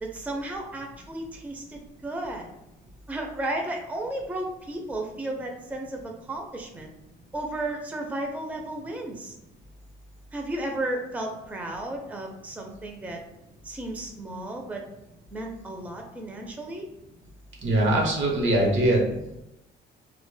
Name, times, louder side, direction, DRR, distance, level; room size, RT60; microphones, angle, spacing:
voice 1, 0.0-2.5 3.1-6.9 7.3-9.3 10.3-13.2 13.6-14.8 15.3-16.9, right 1 dB, 10° right, 1 dB, 0.4 m, -33 dB
voice 2, 17.6-19.2, right 1 dB, 75° right, 0 dB, 0.8 m, -22 dB
2.1 x 2.1 x 3.1 m, 0.89 s
cardioid pair, 90°, 20 cm